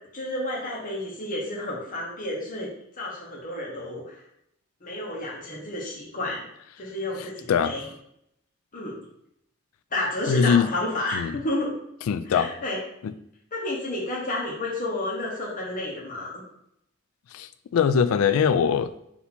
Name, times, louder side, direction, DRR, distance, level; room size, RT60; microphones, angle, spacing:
voice 1, 0.1-2.7 3.0-4.2 4.8-6.5 6.8-7.9 8.7-9.0 9.9-11.7 12.3-12.8 13.5-16.4, left 1 dB, 40° left, -3 dB, 1.0 m, -31 dB
voice 2, 7.5-7.8 10.3-10.7 11.1-11.4 12.1-12.5 13.0-13.1 17.3-18.9, left 7 dB, 85° left, 13 dB, 0.3 m, -22 dB
4.2 x 2.7 x 4.2 m, 0.75 s
head